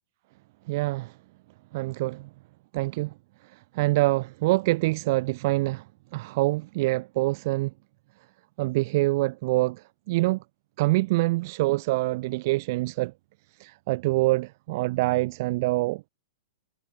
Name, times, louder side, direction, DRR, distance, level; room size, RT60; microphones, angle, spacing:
voice 1, 0.7-1.1 1.7-2.3 2.7-3.1 3.7-5.8 6.1-7.7 8.6-10.4 10.8-13.1 13.6-16.0, right 20 dB, 50° right, 0.3 m, -25 dB
hypercardioid pair, 145°, 2 cm